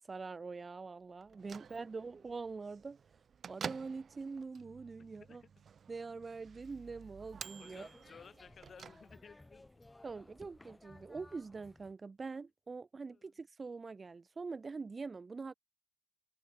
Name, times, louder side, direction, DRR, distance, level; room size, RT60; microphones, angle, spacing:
voice 1, 0.0-3.0 3.5-5.4 5.9-7.9 10.0-15.5, right 4 dB, 30° right, 0.3 m, -44 dB
Bell / Microwave oven, 1.2-9.5, right 7 dB, 50° right, 1.4 m, -50 dB
voice 2, 5.0-5.6 7.6-9.9 13.1-13.4, left 6 dB, 45° left, 2.2 m, -58 dB
sound 1, 6.5-11.9, left 2 dB, 15° left, 6.4 m, -59 dB
cardioid pair, 90°, 0 cm